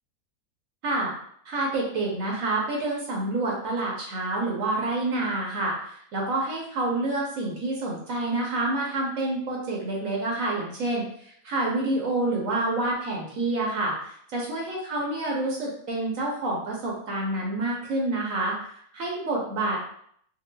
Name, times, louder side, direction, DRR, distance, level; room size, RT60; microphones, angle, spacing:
voice 1, 1.5-11.0 11.4-13.9 14.3-18.5 18.9-19.8, right 2 dB, 65° right, -2 dB, 1.1 m, -28 dB
3.7 x 2.1 x 2.2 m, 0.66 s
omnidirectional pair, 1.6 m